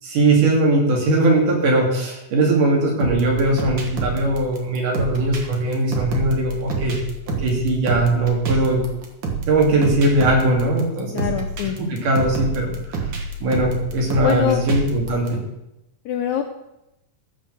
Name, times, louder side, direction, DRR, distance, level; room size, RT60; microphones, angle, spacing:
voice 1, 0.0-7.0 7.4-8.8 9.5-11.2 11.8-13.0 13.4-15.4, right 2 dB, 65° right, -1 dB, 4.1 m, -20 dB
sound 1, 3.0-15.3, right 3 dB, 45° right, 1.7 m, -28 dB
voice 2, 11.1-11.8 14.2-14.6 16.0-16.4, left 9 dB, 80° left, 5 dB, 1.7 m, -23 dB
15.0 x 5.3 x 7.7 m, 0.89 s
omnidirectional pair, 4.0 m